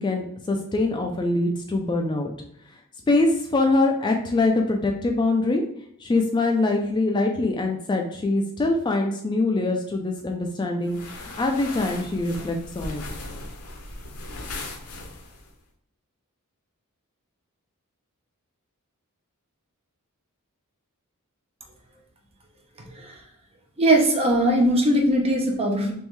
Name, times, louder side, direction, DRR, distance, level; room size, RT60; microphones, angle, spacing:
voice 1, 0.0-2.3 3.1-5.6 6.0-13.0, left 2 dB, 20° left, 3 dB, 0.3 m, -23 dB
sound 1, 10.9-15.5, left 2 dB, 85° left, 0.7 m, -38 dB
voice 2, 22.8-23.2 23.8-25.9, right 1 dB, 25° right, 1 dB, 0.7 m, -20 dB
3.5 x 3.1 x 3.1 m, 0.71 s
head